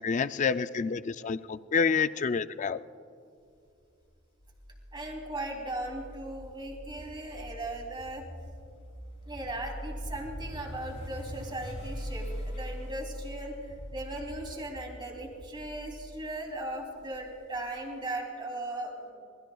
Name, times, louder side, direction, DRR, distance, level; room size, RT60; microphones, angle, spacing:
voice 1, 0.0-2.8, left 5 dB, 35° left, 13 dB, 0.4 m, -28 dB
sound 1, 4.4-17.6, equal, 60° left, 4.8 m, -42 dB
voice 2, 4.9-8.3 9.3-19.1, right 1 dB, 25° right, 1 dB, 3.0 m, -38 dB
26.0 x 21.0 x 2.3 m, 2.5 s
head